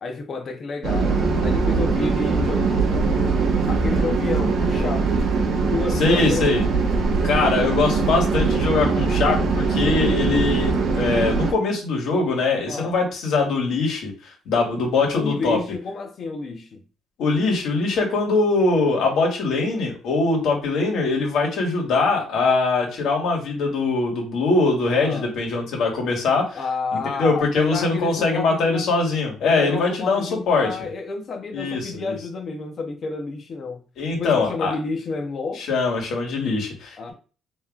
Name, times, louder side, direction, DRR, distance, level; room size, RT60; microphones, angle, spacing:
voice 1, 0.0-3.4 3.7-5.1 5.7-6.6 12.7-12.9 15.1-16.8 24.9-25.3 26.5-28.9 29.4-33.8 34.1-35.6 37.0-37.1, left 4 dB, 40° left, 0.7 m, -30 dB
sound 1, 0.8-11.5, right 4 dB, 60° right, 1.2 m, -21 dB
voice 2, 6.0-6.6 7.2-14.1 14.5-15.6 17.2-26.6 27.2-30.7 31.5-32.2 34.0-34.7 35.6-37.1, left 3 dB, 70° left, 1.7 m, -22 dB
5.5 x 3.0 x 2.4 m
cardioid pair, 135°, 0 cm